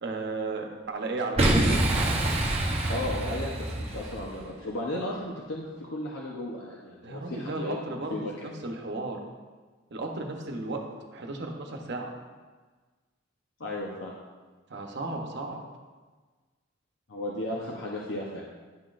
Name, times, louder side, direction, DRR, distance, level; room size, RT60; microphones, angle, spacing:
voice 1, 0.0-1.8 7.0-8.2 8.6-9.2 9.9-10.8 11.1-12.1 14.7-15.6, right 2 dB, 60° right, 2 dB, 0.9 m, -34 dB
Boom, 1.4-4.3, right 1 dB, 30° right, 0.9 m, -26 dB
voice 2, 2.9-8.5 10.7-10.8 13.6-14.1 17.1-18.5, left 1 dB, 80° left, -3 dB, 0.9 m, -35 dB
10.5 x 6.0 x 2.5 m, 1.4 s
head